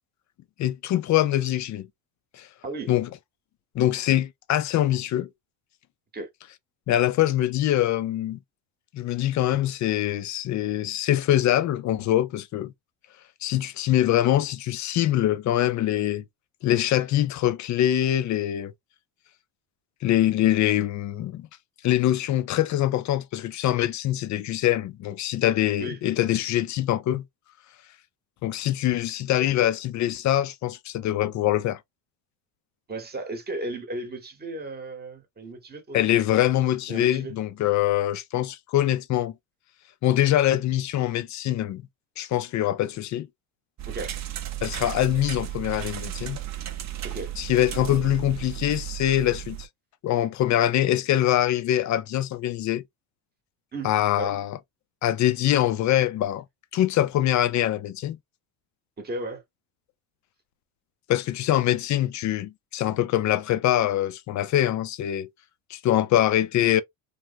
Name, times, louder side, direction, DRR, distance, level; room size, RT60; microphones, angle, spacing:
voice 1, 0.6-1.9 2.4-2.5 2.9-3.1 3.7-5.3 6.9-8.4 8.9-12.7 13.4-16.2 16.6-18.7 20.0-21.5 21.8-27.2 28.4-31.8 35.9-39.3 40.0-41.8 42.2-43.3 44.6-46.4 47.4-49.7 50.0-52.8 53.8-54.6 55.0-56.4 56.7-58.2 61.1-65.3 65.7-66.8, left 13 dB, 45° left, 0.4 m, -24 dB
voice 2, 2.6-3.0 6.1-6.3 25.8-26.0 32.9-36.1 36.9-37.3 43.9-44.2 47.0-47.3 47.7-48.1 53.7-53.9 54.2-54.3 59.0-59.4, right 2 dB, 20° right, 1.0 m, -35 dB
sound 1, 43.8-49.7, right 13 dB, 40° right, 0.6 m, -34 dB
3.4 x 2.0 x 2.5 m
cardioid pair, 110°, 44 cm